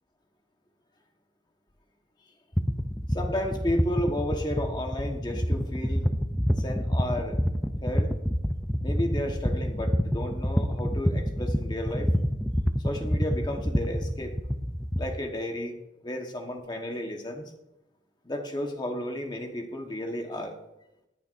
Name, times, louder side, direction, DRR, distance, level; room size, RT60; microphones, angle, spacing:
sound 1, 2.5-15.2, equal, 5° left, 0.4 m, -27 dB
voice 1, 3.1-6.1 6.6-7.4 7.8-8.1 8.8-12.1 12.8-14.3 15.0-15.8 16.0-17.5 18.2-20.6, left 1 dB, 20° left, 3 dB, 1.2 m, -32 dB
19.5 x 6.9 x 2.5 m, 0.92 s
head